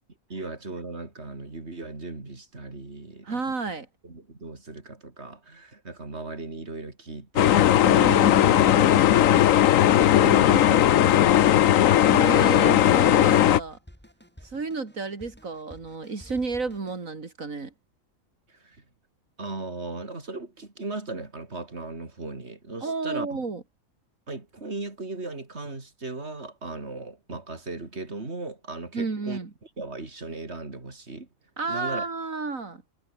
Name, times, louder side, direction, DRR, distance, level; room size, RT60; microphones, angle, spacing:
voice 1, 0.3-3.4 4.0-9.2 9.9-11.8 12.2-12.5 18.5-18.8 19.4-23.4 24.3-29.4 29.8-31.3 31.7-32.1, right 3 dB, 50° right, 4.2 m, -37 dB
voice 2, 3.2-3.9 7.8-9.0 12.1-13.8 14.4-17.7 22.8-23.6 28.9-29.5 31.6-32.8, right 4 dB, 80° right, 3.2 m, -31 dB
sound 1, 7.4-13.6, left 11 dB, 80° left, 1.1 m, -18 dB
Drum kit, 12.0-17.0, equal, 5° left, 7.7 m, -51 dB
omnidirectional pair, 1.4 m